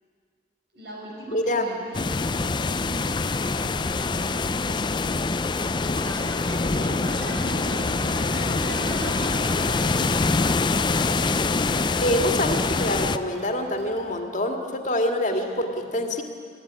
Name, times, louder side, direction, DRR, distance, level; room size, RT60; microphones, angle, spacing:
voice 1, 0.7-5.2 5.5-10.4 15.3-15.4, right 1 dB, 65° right, -1 dB, 4.8 m, -40 dB
voice 2, 1.3-1.7 12.0-16.2, left 1 dB, 45° left, 4 dB, 2.1 m, -25 dB
sound 1, 1.9-13.2, left 3 dB, 25° left, 0.5 m, -25 dB
sound 2, 5.9-14.2, right 1 dB, 85° right, 3.1 m, -40 dB
21.0 x 16.0 x 9.8 m, 2.1 s
head